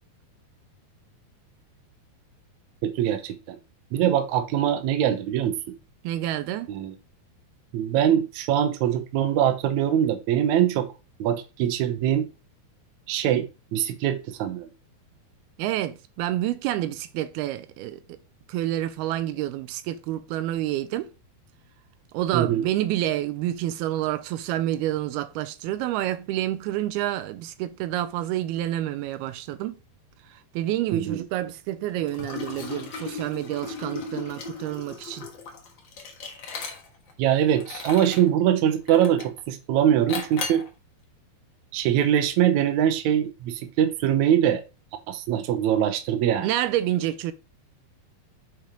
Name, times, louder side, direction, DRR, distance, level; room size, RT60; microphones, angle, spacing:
voice 1, 2.8-3.6 3.9-5.8 6.7-6.9 7.7-10.9 11.2-12.3 13.1-14.7 22.3-22.6 30.9-31.2 37.2-40.6 41.7-44.6 45.1-46.5, right 10 dB, 70° right, 1.9 m, -23 dB
voice 2, 6.0-6.7 15.6-18.2 18.5-21.1 22.1-29.8 30.3-35.3 46.4-47.3, right 13 dB, 85° right, 2.5 m, -28 dB
Liquid, 32.1-37.1 37.6-38.3 38.9-39.4 40.1-40.7, left 4 dB, 65° left, 1.1 m, -36 dB
6.9 x 4.6 x 5.1 m
omnidirectional pair, 4.5 m